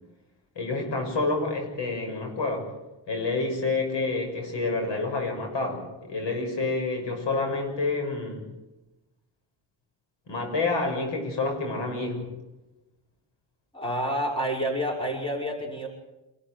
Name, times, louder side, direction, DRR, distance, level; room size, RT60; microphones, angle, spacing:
voice 1, 0.6-2.7 3.1-8.5 10.3-12.3, left 3 dB, 70° left, 4 dB, 6.9 m, -28 dB
voice 2, 13.7-15.9, equal, 10° left, 0 dB, 5.7 m, -28 dB
27.0 x 13.5 x 9.5 m, 1.0 s
cardioid pair, 115°, 45 cm